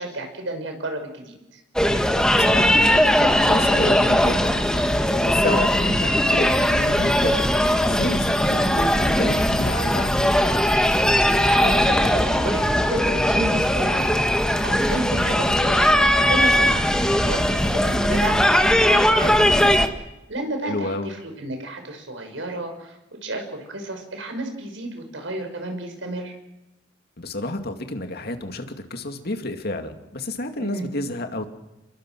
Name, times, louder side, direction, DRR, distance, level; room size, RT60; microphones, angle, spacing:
voice 1, 0.0-1.6 8.5-8.7 11.4-14.2 14.6-26.3 30.6-30.9, right 1 dB, 75° right, 4 dB, 6.1 m, -32 dB
sound 1, 1.8-19.9, equal, 5° left, 1.6 m, -19 dB
voice 2, 2.3-4.8 5.2-7.4 7.8-10.4 20.6-21.1 27.2-28.6 28.9-31.5, left 1 dB, 55° left, 6 dB, 2.5 m, -30 dB
30.0 x 22.0 x 6.3 m, 0.97 s
head